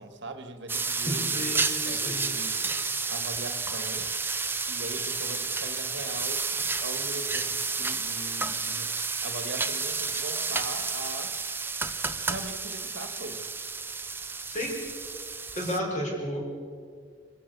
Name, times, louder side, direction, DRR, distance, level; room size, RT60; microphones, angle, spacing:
voice 1, 0.0-2.7 3.1-4.1 4.7-8.9 9.2-11.3 12.2-13.5, right 2 dB, 55° right, 8 dB, 1.6 m, -40 dB
sound 1, 0.7-15.8, right 4 dB, 10° right, 0.8 m, -31 dB
voice 2, 1.0-2.3 14.5-14.8 15.6-16.4, equal, 35° left, -1 dB, 5.3 m, -32 dB
26.0 x 15.5 x 6.8 m, 2.2 s
head